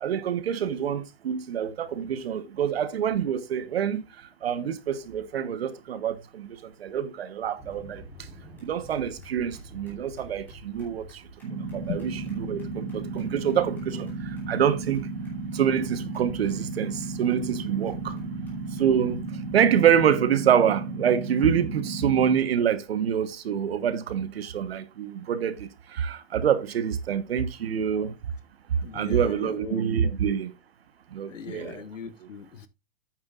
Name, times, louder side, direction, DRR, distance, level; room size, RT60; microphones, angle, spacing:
voice 1, 0.0-4.0 4.4-6.5 6.8-8.0 8.6-11.0 11.5-12.0 12.5-14.1 14.5-15.1 15.5-18.1 18.8-19.2 19.5-28.1 28.9-30.5 31.1-31.8, right 8 dB, 55° right, 1.2 m, -26 dB
sound 1, 7.6-20.3, right 1 dB, 5° left, 3.0 m, -48 dB
sound 2, 11.4-22.4, right 3 dB, 85° right, 2.3 m, -34 dB
voice 2, 11.9-12.4 12.8-12.9 28.7-30.2 31.3-32.7, left 7 dB, 90° left, 1.5 m, -39 dB
10.5 x 8.8 x 2.5 m
hypercardioid pair, 175°, 37 cm